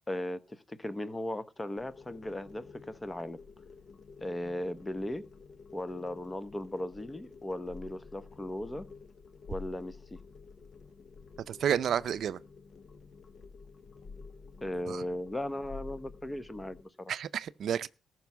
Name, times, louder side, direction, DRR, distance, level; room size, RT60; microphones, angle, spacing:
voice 1, 0.1-3.4 4.2-5.2 5.7-8.9 9.5-10.2 14.6-17.1, left 1 dB, 15° left, 1.0 m, -37 dB
sound 1, 1.8-16.8, left 4 dB, 50° left, 1.0 m, -51 dB
voice 2, 11.5-12.4 14.9-15.0 17.1-17.9, right 9 dB, 65° right, 0.5 m, -30 dB
14.0 x 6.1 x 7.0 m
cardioid pair, 90°, 0 cm